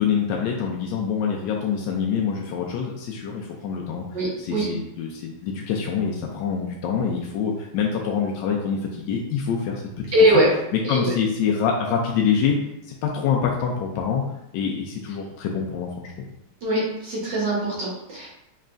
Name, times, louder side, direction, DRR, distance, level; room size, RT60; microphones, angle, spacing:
voice 1, 0.0-4.0 4.4-10.0 10.9-12.6 12.9-14.2 14.5-16.3, left 6 dB, 80° left, -1 dB, 1.0 m, -25 dB
voice 2, 4.1-4.7 10.1-10.5 10.8-11.1 16.6-18.3, right 1 dB, 55° right, -6 dB, 1.7 m, -21 dB
4.5 x 3.1 x 2.5 m, 0.83 s
omnidirectional pair, 2.4 m